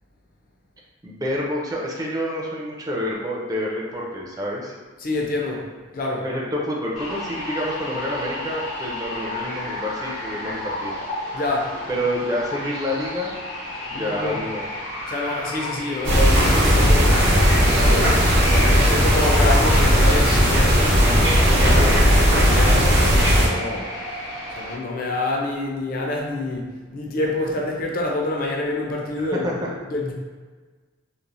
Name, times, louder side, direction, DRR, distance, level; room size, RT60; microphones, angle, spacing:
voice 1, 1.0-4.7 6.2-10.9 11.9-13.3 13.9-14.7 21.7-22.0 29.3-29.7, equal, 20° right, -3 dB, 0.4 m, -28 dB
voice 2, 5.0-5.7 5.9-6.3 11.3-11.8 13.9-14.4 15.1-17.2 17.8-23.9 24.5-30.1, left 2 dB, 50° left, -1 dB, 0.4 m, -27 dB
sound 1, 6.9-24.8, left 1 dB, 85° left, 0.9 m, -32 dB
sound 2, 16.0-23.5, equal, 85° right, 0.8 m, -16 dB
3.0 x 2.0 x 2.5 m, 1.4 s
head